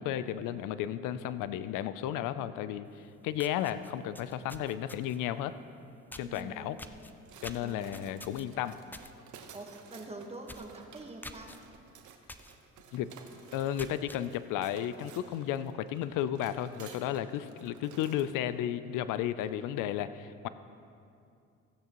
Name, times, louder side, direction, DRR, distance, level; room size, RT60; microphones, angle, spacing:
voice 1, 0.0-5.6 6.2-6.8 7.4-8.8 12.9-13.1 13.5-20.5, left 11 dB, 85° left, 14 dB, 0.5 m, -33 dB
sound 1, 2.9-3.0 3.3-5.3 6.1-6.4 6.8-9.1 9.5-9.7 10.0-10.1 10.4-10.7 11.2-11.6 12.3-12.5 13.0-13.1 13.6-14.2, left 1 dB, 5° left, 0.4 m, -47 dB
voice 2, 6.2-6.7 7.6-8.0 9.5-11.5, right 2 dB, 20° right, 3 dB, 1.3 m, -45 dB
sound 2, 7.3-18.4, right 6 dB, 70° right, 0.9 m, -54 dB
15.5 x 9.2 x 3.0 m, 2.4 s
cardioid pair, 80°, 31 cm